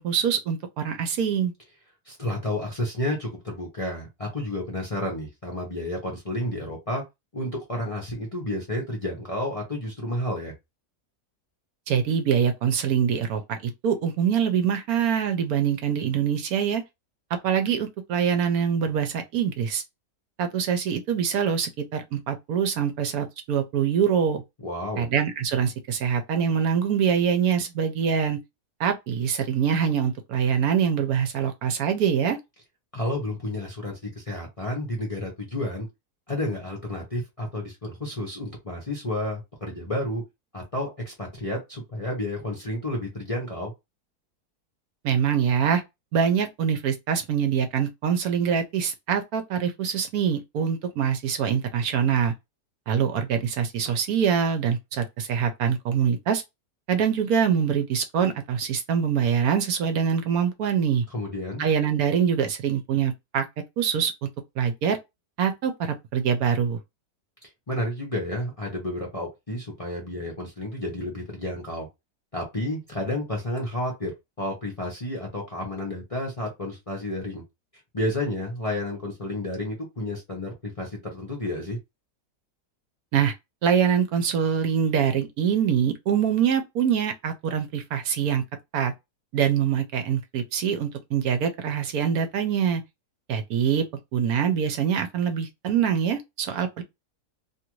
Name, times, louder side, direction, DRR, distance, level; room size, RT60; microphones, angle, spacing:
voice 1, 0.0-1.5 11.9-16.8 17.4-19.8 20.4-24.4 25.0-28.4 28.8-32.4 45.0-45.8 46.1-52.3 52.9-56.4 56.9-61.0 61.6-63.4 63.8-64.3 64.6-65.0 65.4-66.8 83.1-83.3 83.6-88.4 88.7-88.9 89.3-92.8 93.3-93.9 94.1-96.8, right 7 dB, 70° right, 1.0 m, -24 dB
voice 2, 2.0-7.0 7.3-10.5 24.6-25.1 32.9-35.9 36.3-40.2 40.5-43.7 61.1-61.6 67.4-71.9 72.3-77.4 77.9-81.8, left 1 dB, 30° left, 0.6 m, -31 dB
2.8 x 2.5 x 3.0 m
omnidirectional pair, 1.7 m